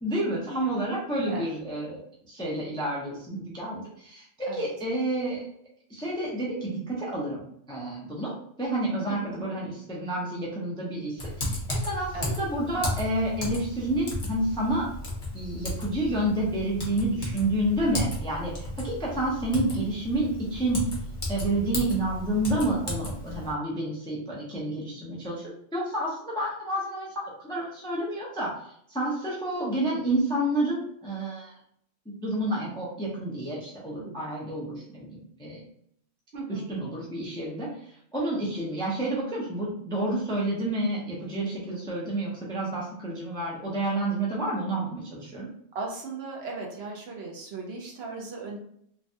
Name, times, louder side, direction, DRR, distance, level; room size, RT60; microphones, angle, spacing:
voice 1, 0.0-2.0 2.3-5.5 5.9-7.4 7.7-14.9 15.3-20.8 21.3-28.5 28.9-31.5 32.1-35.6 36.5-37.7 38.1-45.5, right 1 dB, 5° left, -5 dB, 0.4 m, -29 dB
voice 2, 9.1-9.4 12.1-12.3 34.0-34.2 36.3-36.7 45.7-48.6, right 3 dB, 60° right, 0 dB, 0.8 m, -37 dB
Typing, 11.2-23.5, left 1 dB, 45° left, 1.0 m, -34 dB
3.2 x 2.2 x 2.6 m, 0.69 s
omnidirectional pair, 1.4 m